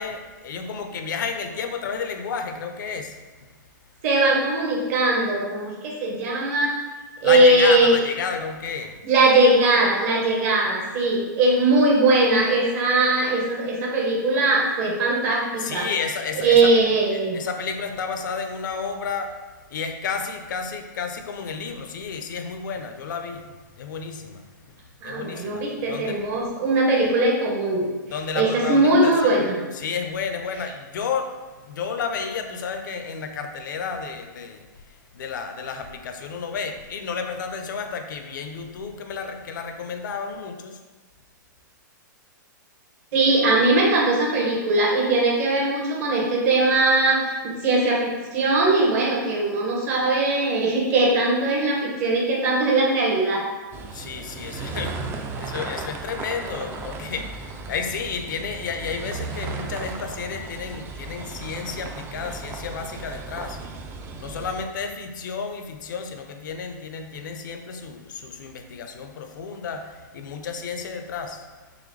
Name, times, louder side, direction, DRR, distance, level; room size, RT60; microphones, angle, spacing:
voice 1, 0.0-3.5 7.2-9.0 15.6-16.7 17.1-19.4 19.7-24.8 25.0-26.2 28.1-29.4 29.7-34.7 35.1-40.8 53.9-63.6 64.2-71.4, left 5 dB, 70° left, 6 dB, 0.5 m, -31 dB
voice 2, 4.0-6.7 7.2-8.0 9.0-15.9 16.4-17.4 25.0-27.9 28.3-29.5 43.1-53.4, right 2 dB, 50° right, -2 dB, 1.2 m, -20 dB
sound 1, 53.7-64.6, right 4 dB, 20° right, 0.3 m, -35 dB
3.9 x 2.9 x 3.2 m, 1.3 s
hypercardioid pair, 130°, 11 cm